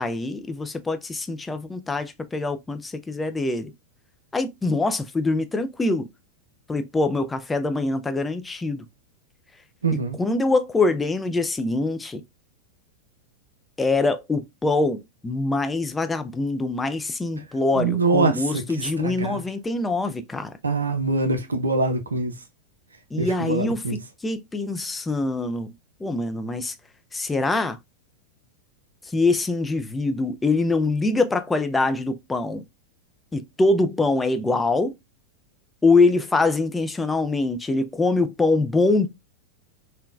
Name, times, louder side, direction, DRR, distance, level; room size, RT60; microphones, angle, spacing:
voice 1, 0.0-3.7 4.3-6.1 6.7-8.9 9.9-12.2 13.8-20.6 23.1-25.7 26.0-26.7 27.1-27.8 29.0-32.6 33.3-35.0 35.8-39.1, left 3 dB, 10° left, 0.3 m, -24 dB
voice 2, 9.8-10.2 17.7-18.6 19.0-19.4 20.6-22.3 23.2-24.0, right 3 dB, 75° right, 0.6 m, -24 dB
3.6 x 2.2 x 2.4 m
figure-of-eight pair, 90°, 0 cm